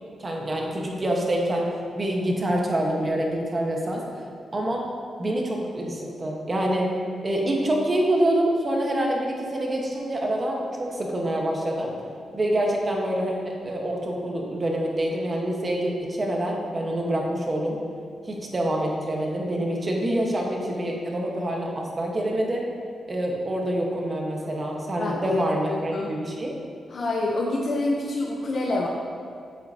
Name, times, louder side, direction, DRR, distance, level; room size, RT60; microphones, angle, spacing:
voice 1, 0.2-1.7 1.9-4.0 4.5-4.9 5.2-6.9 7.2-11.9 12.3-13.4 13.6-17.8 18.3-22.6 23.1-26.5, right 1 dB, 30° right, -1 dB, 1.3 m, -26 dB
voice 2, 25.0-26.1 26.9-28.9, left 2 dB, 50° left, -1 dB, 0.8 m, -27 dB
8.3 x 7.8 x 2.8 m, 2.3 s
cardioid pair, 105°, 0 cm